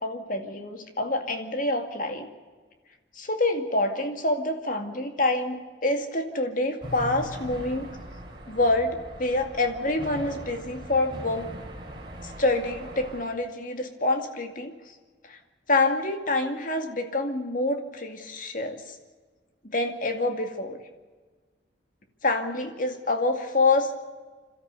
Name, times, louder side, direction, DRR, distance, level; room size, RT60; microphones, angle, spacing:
voice 1, 0.0-2.3 3.1-7.9 8.5-11.5 12.2-14.7 15.3-15.4 15.7-18.8 19.6-20.8 22.2-23.9, left 2 dB, 45° left, 5 dB, 2.3 m, -27 dB
sound 1, 6.8-13.2, equal, 25° right, 3.3 m, -40 dB
27.5 x 13.5 x 8.2 m, 1.4 s
head